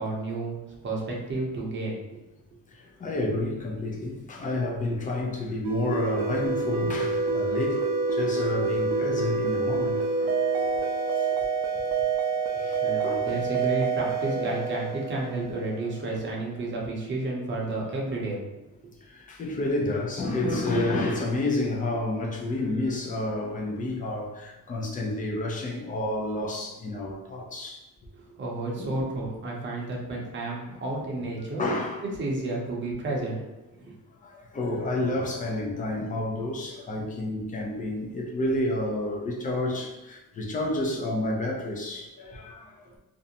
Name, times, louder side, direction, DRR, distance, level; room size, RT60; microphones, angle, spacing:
voice 1, 0.0-2.0 12.8-18.4 28.4-31.6 32.2-33.4 33.7-34.0, right 2 dB, 35° right, 0.7 m, -31 dB
voice 2, 2.7-10.8 11.2-11.5 11.8-11.9 12.6-13.3 19.0-27.8 28.8-29.1 31.6-32.0 34.2-42.8, left 2 dB, 25° left, 0.4 m, -30 dB
sound 1, 5.6-16.0, right 4 dB, 75° right, 0.5 m, -27 dB
2.5 x 2.1 x 2.8 m
cardioid pair, 130°, 34 cm